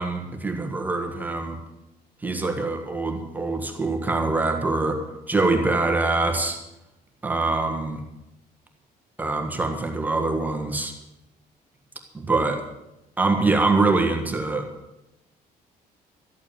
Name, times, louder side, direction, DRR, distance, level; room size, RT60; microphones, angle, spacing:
voice 1, 0.0-1.6 2.2-5.0 5.3-6.6 7.2-8.0 9.2-10.9 12.1-12.6 13.2-14.7, right 3 dB, 10° right, 3 dB, 1.5 m, -24 dB
13.5 x 8.4 x 8.9 m, 0.94 s
cardioid pair, 160°, 16 cm